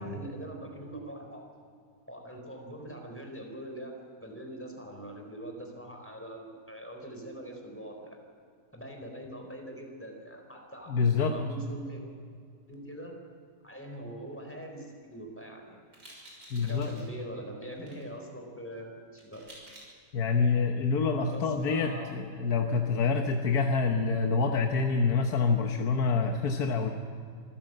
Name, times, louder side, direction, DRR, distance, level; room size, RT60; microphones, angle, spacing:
voice 1, 0.0-1.4 2.1-3.9 4.2-8.2 8.7-12.0 12.7-13.2 13.6-15.8 16.1-16.2 16.6-19.4 21.3-22.1, right 1 dB, 10° left, 2 dB, 4.4 m, -43 dB
voice 2, 10.9-11.3 16.5-16.9 20.1-26.9, left 4 dB, 85° left, 3 dB, 1.7 m, -27 dB
sound 1, 15.9-17.1 17.7-18.0 19.1-19.9, right 1 dB, 75° right, 6.7 m, -51 dB
25.5 x 15.5 x 7.8 m, 2.3 s
omnidirectional pair, 1.6 m